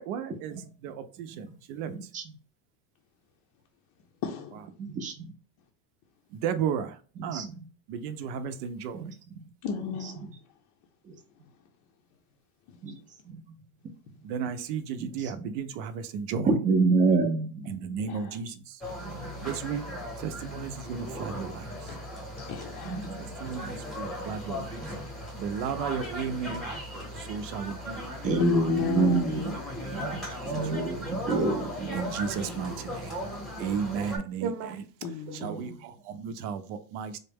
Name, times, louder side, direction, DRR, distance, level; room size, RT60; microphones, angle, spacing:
voice 1, 0.0-2.1 6.3-7.5 7.9-9.1 14.2-16.5 17.7-18.8 19.4-19.8 20.2-22.0 23.2-25.0 25.4-26.6 27.1-28.0 29.8-30.2 30.5-30.6 30.9-31.1 31.9-33.2 33.6-34.9 35.3-37.2, right 7 dB, 75° right, 0.6 m, -34 dB
voice 2, 1.9-2.2 4.8-5.3 7.3-7.5 9.0-9.1 11.1-11.2 12.8-12.9 13.3-13.4 15.4-15.5 16.5-17.7 19.0-19.5 21.4-21.5 22.8-23.2 28.2-29.4 29.9-32.0, right 3 dB, 20° right, 0.4 m, -27 dB
voice 3, 4.2-4.6 9.6-10.3 18.0-18.3 22.4-23.5 28.4-29.6 32.4-33.0 35.0-35.8, left 5 dB, 50° left, 0.6 m, -33 dB
sound 1, 18.8-34.2, equal, ahead, 0.8 m, -37 dB
3.8 x 2.2 x 3.4 m
cardioid pair, 150°, 42 cm